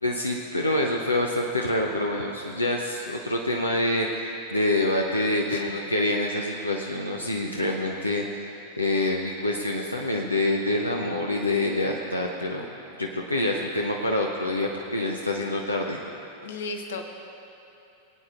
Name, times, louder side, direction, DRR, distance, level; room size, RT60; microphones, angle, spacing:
voice 1, 0.0-8.5 8.8-12.6 13.0-16.0, left 1 dB, 85° left, 0 dB, 0.7 m, -26 dB
voice 2, 5.5-5.9 16.4-17.1, left 3 dB, 60° left, 5 dB, 1.0 m, -35 dB
22.0 x 8.9 x 2.5 m, 2.9 s
figure-of-eight pair, 90°, 0 cm